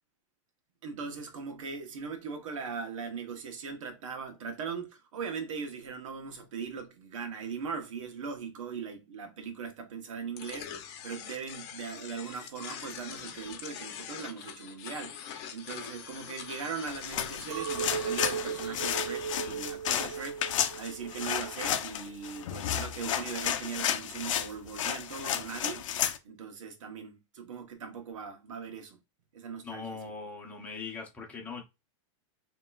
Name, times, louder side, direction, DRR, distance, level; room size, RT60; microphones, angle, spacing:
voice 1, 0.8-15.2 15.5-20.4 20.7-25.9 26.2-29.0 29.3-30.0, right 6 dB, 85° right, 1.2 m, -39 dB
sound 1, 10.4-19.5, left 8 dB, 40° left, 0.8 m, -44 dB
sound 2, 16.9-26.2, left 10 dB, 80° left, 0.6 m, -32 dB
Chink clink, 17.5-23.0, right 8 dB, 55° right, 0.6 m, -37 dB
voice 2, 29.6-31.6, left 4 dB, 10° left, 0.9 m, -40 dB
5.4 x 3.0 x 2.4 m
supercardioid pair, 150°, 16 cm